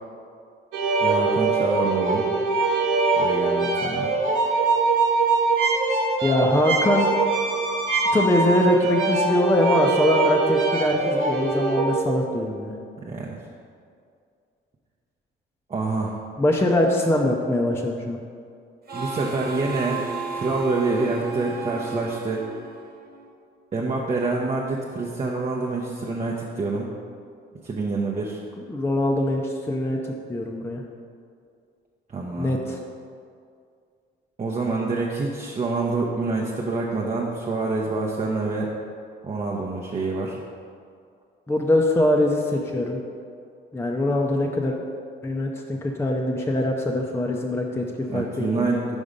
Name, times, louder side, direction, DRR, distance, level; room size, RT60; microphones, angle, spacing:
sound 1, 0.7-12.0, right 3 dB, 85° right, 1.3 m, -22 dB
voice 1, 1.0-2.3 3.1-4.1 13.0-13.4 15.7-16.1 18.9-20.1 20.3-22.4 23.7-26.9 27.6-28.4 32.1-32.6 34.4-38.7 39.2-40.4 48.1-49.0, right 3 dB, 35° right, -2 dB, 0.7 m, -26 dB
voice 2, 6.2-7.1 8.1-12.8 16.4-18.2 28.7-30.0 30.3-30.8 32.4-32.8 41.5-43.0 43.7-44.8 45.2-48.9, left 1 dB, 10° left, 0 dB, 0.5 m, -23 dB
Harmonica, 18.9-23.3, right 4 dB, 50° right, 1.2 m, -34 dB
5.3 x 4.8 x 5.1 m, 2.3 s
cardioid pair, 90°, 20 cm